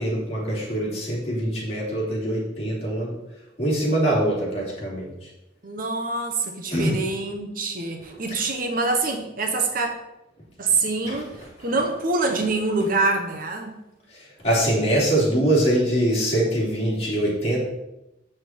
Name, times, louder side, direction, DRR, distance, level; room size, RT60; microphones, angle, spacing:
voice 1, 0.0-3.1 3.6-5.1 6.7-7.0 8.3-8.4 11.0-11.2 14.1-17.6, right 1 dB, 35° left, -6 dB, 3.3 m, -23 dB
voice 2, 5.6-9.9 10.6-11.3 11.6-13.8, right 3 dB, 50° right, 3 dB, 1.0 m, -25 dB
7.6 x 6.2 x 4.4 m, 0.92 s
head